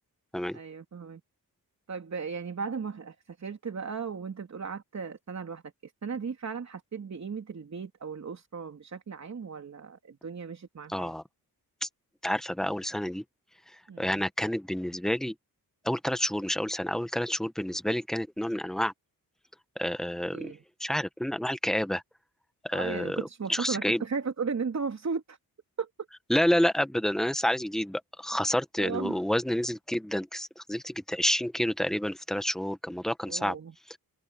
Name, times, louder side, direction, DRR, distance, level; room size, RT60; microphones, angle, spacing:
voice 1, 0.5-1.2 1.9-11.1 13.9-14.2 20.3-20.6 22.7-25.4 25.8-25.9 28.8-29.2 33.3-33.7, right 5 dB, 45° right, 3.4 m, -36 dB
voice 2, 10.9-11.2 11.8-11.9 12.2-13.2 14.0-15.3 15.8-18.9 19.8-22.0 22.6-23.2 23.5-24.0 26.3-33.6 33.9-34.0, equal, ahead, 1.1 m, -29 dB
wide cardioid pair, 140°, 37 cm